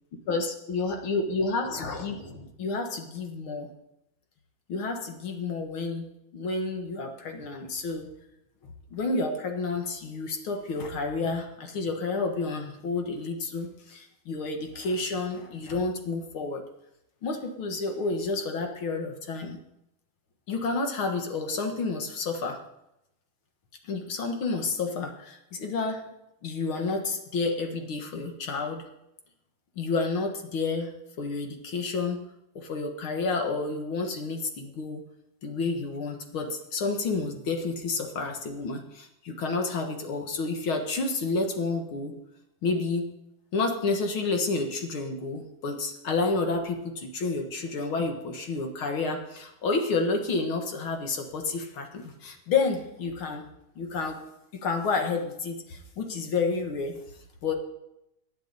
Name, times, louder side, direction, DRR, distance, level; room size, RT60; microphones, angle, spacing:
voice 1, 0.3-3.7 4.7-8.1 8.6-16.6 17.2-19.6 20.5-22.6 23.8-26.1 26.4-28.9 29.7-35.0 35.4-42.2 42.6-43.1 43.5-53.4 53.7-54.2 54.5-57.0 57.4-57.5, left 3 dB, 50° left, 4 dB, 1.7 m, -30 dB
18.5 x 11.0 x 4.0 m, 0.85 s
omnidirectional pair, 3.7 m